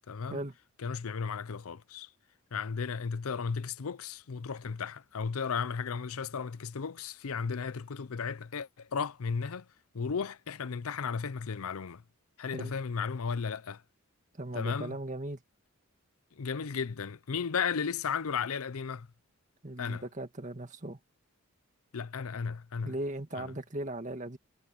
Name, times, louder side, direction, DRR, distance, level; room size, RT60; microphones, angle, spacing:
voice 1, 0.1-0.4 0.8-2.1 2.5-9.7 9.9-12.0 12.4-13.8 14.5-15.0 16.3-19.1 19.8-20.0 21.9-22.9 23.3-23.5, left 6 dB, 75° left, 0.6 m, -34 dB
voice 2, 14.3-15.4 19.6-21.0 22.8-24.4, right 1 dB, 35° right, 2.0 m, -38 dB
head